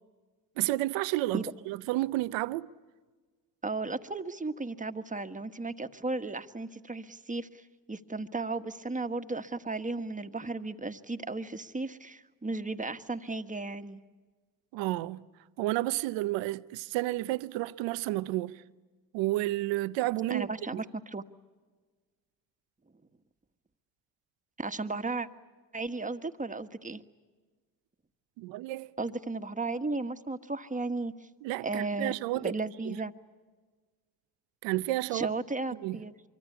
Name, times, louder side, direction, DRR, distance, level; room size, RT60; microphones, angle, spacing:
voice 1, 0.6-2.7 14.7-15.2 15.6-18.6 19.1-20.5 20.7-20.8 28.4-28.9 31.4-32.6 32.8-33.0 34.6-35.3 35.8-36.0, right 17 dB, 85° right, 0.7 m, -31 dB
voice 2, 3.6-7.6 7.9-14.0 20.3-21.2 24.6-25.3 25.7-27.0 29.0-31.1 31.6-33.1 35.1-36.1, right 3 dB, 20° right, 1.4 m, -35 dB
24.5 x 24.0 x 8.4 m
supercardioid pair, 60°, 43 cm